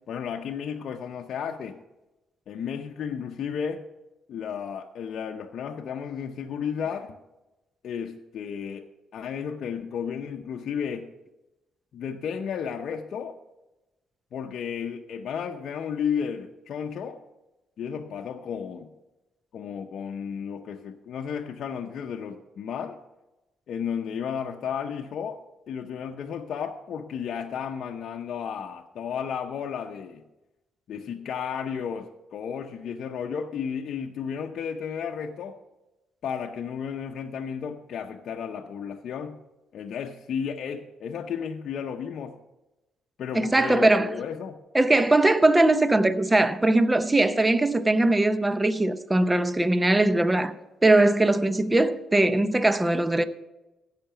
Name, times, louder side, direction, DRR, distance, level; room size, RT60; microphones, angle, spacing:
voice 1, 0.1-1.8 2.5-3.8 4.3-7.2 7.8-8.9 9.1-11.1 11.9-13.4 14.3-17.2 17.8-18.9 19.5-23.0 23.7-25.4 25.7-30.2 30.9-35.6 36.2-39.4 39.7-42.4 43.2-44.6, left 7 dB, 65° left, 0.7 m, -33 dB
voice 2, 43.3-44.1 44.7-50.5 50.8-53.3, right 2 dB, 15° right, 0.7 m, -21 dB
15.5 x 5.8 x 5.7 m
cardioid pair, 90°, 0 cm